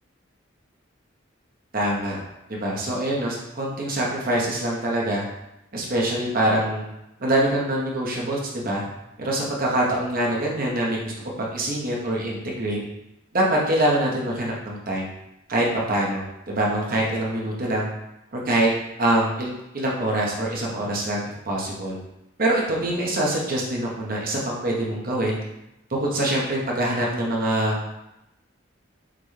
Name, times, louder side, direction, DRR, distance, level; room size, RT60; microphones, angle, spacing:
voice 1, 1.7-2.2 2.5-5.2 5.7-6.8 7.2-8.8 9.2-11.1 11.4-12.8 13.3-15.1 15.5-17.9 18.3-18.7 19.0-21.2 21.5-22.0 22.4-25.4 25.9-27.8, right 1 dB, 45° right, -3 dB, 0.9 m, -24 dB
5.8 x 2.2 x 3.2 m, 0.89 s
head